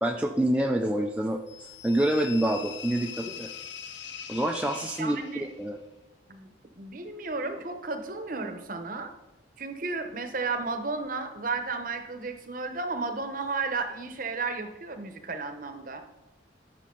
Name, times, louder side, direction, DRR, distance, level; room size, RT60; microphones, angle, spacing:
voice 1, 0.0-1.4 1.8-3.5 4.3-5.8, right 1 dB, 5° right, 2 dB, 0.4 m, -27 dB
sound 1, 1.5-5.6, left 8 dB, 75° left, 0.7 m, -42 dB
voice 2, 5.0-5.5 6.3-6.5 6.8-9.1 9.6-16.0, right 3 dB, 45° right, 7 dB, 0.9 m, -33 dB
12.5 x 6.4 x 3.8 m, 0.98 s
head